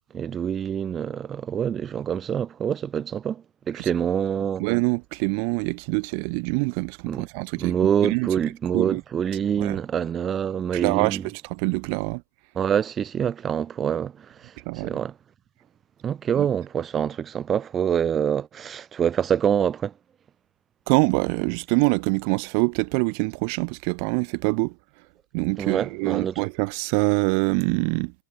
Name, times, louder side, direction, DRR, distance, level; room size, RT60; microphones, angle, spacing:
voice 1, 0.1-4.6 7.1-7.3 7.6-11.3 12.5-15.2 16.0-19.9 25.6-26.4, right 8 dB, 20° right, 4.6 m, -26 dB
voice 2, 4.6-7.8 8.0-8.3 8.7-9.0 9.6-9.8 10.7-12.2 14.7-14.9 16.3-16.5 20.9-24.7 25.3-28.1, right 40 dB or more, 45° right, 2.3 m, -25 dB
hypercardioid pair, 135°, 0 cm